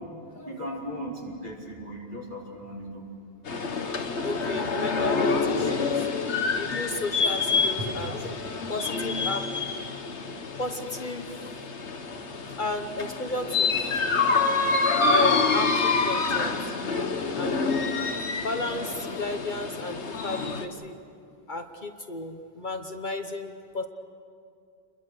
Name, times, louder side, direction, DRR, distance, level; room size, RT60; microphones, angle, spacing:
voice 1, 0.4-3.1 4.5-4.7 6.6-7.0, equal, 45° right, -4 dB, 5.0 m, -38 dB
sound 1, 3.5-20.7, left 4 dB, 85° left, 1.6 m, -27 dB
voice 2, 4.2-9.6 10.6-11.3 12.6-13.8 15.1-16.6 17.4-17.8 18.3-21.0 21.5-23.9, left 2 dB, 45° left, 5 dB, 1.2 m, -33 dB
29.0 x 22.0 x 6.6 m, 2.4 s
omnidirectional pair, 1.1 m